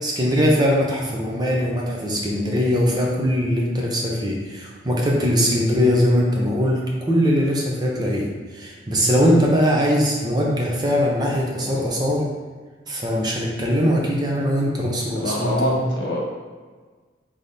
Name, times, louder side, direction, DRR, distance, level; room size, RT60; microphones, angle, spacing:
voice 1, 0.0-8.3 8.5-12.3 12.9-15.8, equal, 20° right, -3 dB, 0.6 m, -21 dB
voice 2, 15.2-16.2, left 1 dB, 75° left, -3 dB, 1.1 m, -24 dB
3.5 x 3.5 x 4.0 m, 1.4 s
head